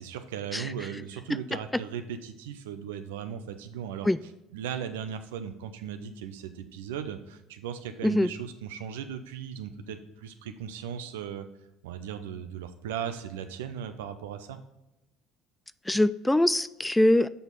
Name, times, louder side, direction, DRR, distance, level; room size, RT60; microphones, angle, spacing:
voice 1, 0.0-4.1 4.5-11.5 11.8-14.6, right 8 dB, 75° right, 9 dB, 0.6 m, -37 dB
voice 2, 15.9-17.3, left 1 dB, 10° left, 16 dB, 0.3 m, -23 dB
6.9 x 6.2 x 3.9 m, 0.90 s
figure-of-eight pair, 60°, 0 cm